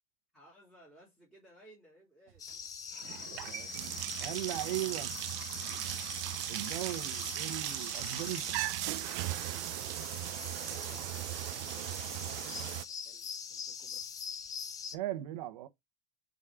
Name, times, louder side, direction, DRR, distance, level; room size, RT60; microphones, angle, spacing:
voice 1, 0.3-2.6 10.6-14.1, equal, ahead, 2.9 m, -60 dB
sound 1, 2.4-15.0, left 6 dB, 20° left, 0.6 m, -43 dB
sound 2, 2.4-2.5 2.9-12.9, right 21 dB, 45° right, 0.4 m, -38 dB
voice 2, 3.4-3.8 4.2-5.1 6.5-8.4 10.6-10.8 14.9-15.7, right 15 dB, 70° right, 1.0 m, -38 dB
4.9 x 4.1 x 4.9 m
supercardioid pair, 160°, 19 cm